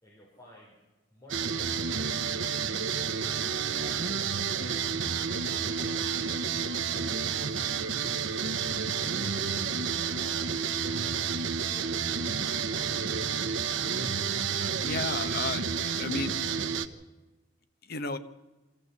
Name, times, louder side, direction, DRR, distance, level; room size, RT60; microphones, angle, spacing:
voice 1, 0.0-0.8 1.1-4.7 5.1-8.1 8.9-10.7 11.0-13.5, equal, 20° left, -4 dB, 4.7 m, -53 dB
sound 1, 1.3-16.9, right 6 dB, 85° right, 1.1 m, -30 dB
voice 2, 14.5-16.4 17.9-18.2, left 3 dB, 55° left, 10 dB, 1.2 m, -34 dB
25.0 x 14.5 x 8.2 m, 1.2 s
head